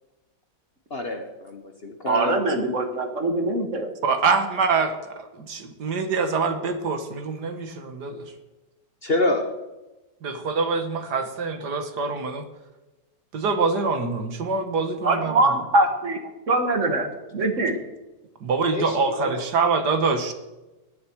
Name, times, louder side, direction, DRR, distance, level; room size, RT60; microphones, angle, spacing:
voice 1, 0.9-2.4 9.0-9.5 18.7-19.5, left 2 dB, 40° left, 5 dB, 1.3 m, -27 dB
voice 2, 2.0-3.9 15.0-16.2 16.5-17.8, right 2 dB, 45° right, 6 dB, 1.9 m, -23 dB
voice 3, 4.0-8.3 10.2-12.4 13.3-15.5 18.4-20.3, right 4 dB, 70° right, 8 dB, 1.9 m, -25 dB
18.5 x 10.5 x 4.6 m, 1.1 s
omnidirectional pair, 1.9 m